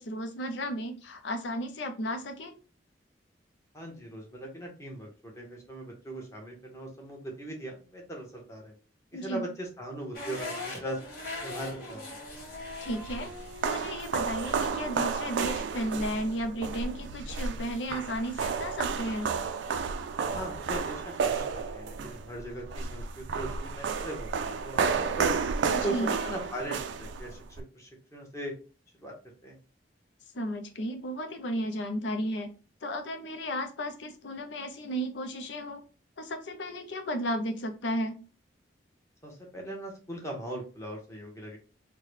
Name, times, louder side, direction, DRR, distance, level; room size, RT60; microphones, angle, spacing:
voice 1, 0.0-2.6 9.1-9.5 12.8-13.3 13.7-19.3 25.7-26.1 30.3-32.5 32.8-35.8 36.2-38.2, equal, 80° left, 6 dB, 0.6 m, -34 dB
voice 2, 3.7-8.7 9.1-11.0 11.4-12.0 12.3-12.4 20.3-25.3 25.8-27.4 27.7-28.6 29.0-29.1 29.4-29.6 39.2-41.6, right 1 dB, 15° left, 0 dB, 1.0 m, -39 dB
sound 1, 10.1-16.2, left 2 dB, 55° left, 1.2 m, -42 dB
sound 2, 12.6-27.6, right 5 dB, 70° right, 0.3 m, -32 dB
3.7 x 2.2 x 3.1 m, 0.34 s
head